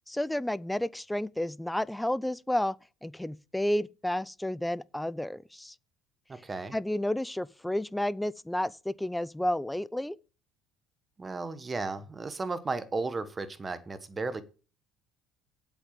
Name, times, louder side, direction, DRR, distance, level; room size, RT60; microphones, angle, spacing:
voice 1, 0.1-2.8 3.0-5.7 6.7-10.2, left 1 dB, 5° left, 0.4 m, -31 dB
voice 2, 6.3-6.7 11.2-14.4, right 3 dB, 25° right, 1.2 m, -34 dB
8.1 x 6.0 x 7.5 m
supercardioid pair, 80°, 0 cm